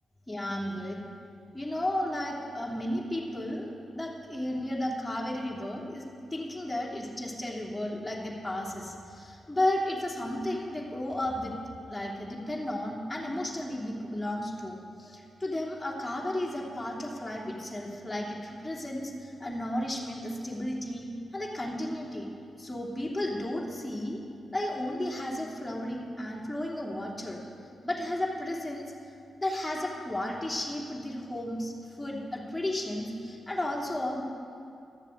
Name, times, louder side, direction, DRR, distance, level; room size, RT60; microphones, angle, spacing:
voice 1, 0.3-1.0 1.5-11.5 11.9-21.1 21.3-22.3 22.6-24.2 24.5-27.4 27.8-28.8 29.4-34.2, left 1 dB, 10° left, -3 dB, 3.0 m, -33 dB
12.5 x 7.2 x 8.0 m, 2.6 s
supercardioid pair, 40°, 0 cm